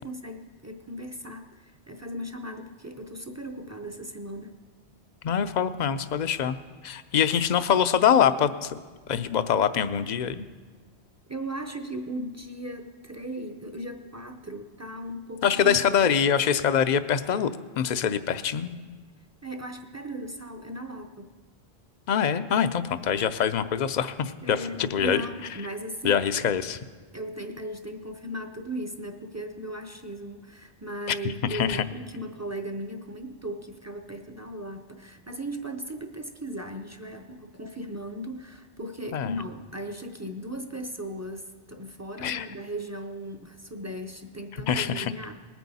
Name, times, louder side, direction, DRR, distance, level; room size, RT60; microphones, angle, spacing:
voice 1, 0.0-4.5 6.9-7.0 11.3-16.2 19.4-21.3 24.4-26.3 27.1-45.3, right 1 dB, 20° right, 5 dB, 0.5 m, -37 dB
voice 2, 5.2-6.6 6.8-8.7 9.1-10.5 15.4-17.5 17.8-18.8 22.1-25.2 26.0-26.8 31.1-31.2 31.5-31.8 39.1-39.4 42.2-42.5 44.7-45.1, left 8 dB, 55° left, 12 dB, 0.6 m, -24 dB
20.0 x 9.2 x 4.1 m, 1.4 s
omnidirectional pair, 1.1 m